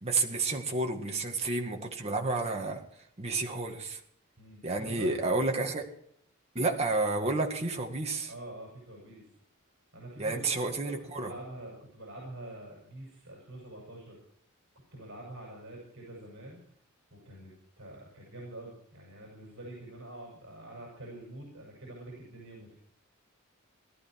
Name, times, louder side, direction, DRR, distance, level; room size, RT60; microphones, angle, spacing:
voice 1, 0.0-2.8 3.2-4.0 4.6-5.8 6.5-8.3 10.2-11.3, right 3 dB, 30° right, 2 dB, 2.0 m, -30 dB
voice 2, 4.4-5.1 8.3-9.3 9.9-14.2 14.9-16.6 17.1-22.8, right 1 dB, 55° right, -2 dB, 6.6 m, -46 dB
18.0 x 12.5 x 4.6 m, 0.69 s
head